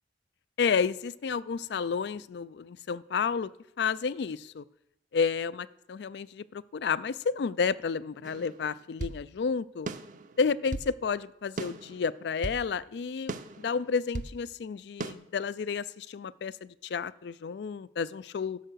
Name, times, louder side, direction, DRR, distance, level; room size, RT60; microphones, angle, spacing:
voice 1, 0.6-3.5 3.8-4.6 5.1-9.9 10.4-18.6, left 5 dB, 65° left, 19 dB, 0.4 m, -31 dB
sound 1, 8.2-9.2 9.9-10.9 11.6-12.6 13.3-14.4 15.0-15.1, right 2 dB, 45° right, 0.6 m, -38 dB
11.5 x 6.7 x 6.2 m, 0.83 s
head